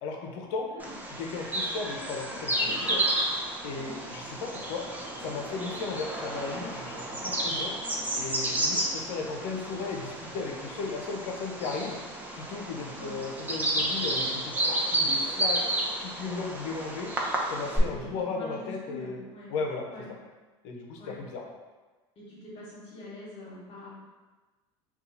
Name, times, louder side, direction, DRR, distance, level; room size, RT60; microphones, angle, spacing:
voice 1, 0.0-0.7 1.1-3.0 3.6-4.8 5.2-7.7 8.1-12.0 12.3-15.7 16.0-17.1 17.5-19.2 19.5-19.8 20.6-21.4, left 4 dB, 75° left, 1 dB, 0.6 m, -35 dB
Bird vocalization bird call bird song, 0.8-17.8, right 1 dB, 10° right, 0.6 m, -31 dB
voice 2, 8.8-9.1 12.9-13.2 17.7-19.5 19.9-20.1 21.0-21.2 22.2-23.9, left 2 dB, 50° left, -6 dB, 1.1 m, -44 dB
2.8 x 2.3 x 3.9 m, 1.2 s
supercardioid pair, 90°, 14 cm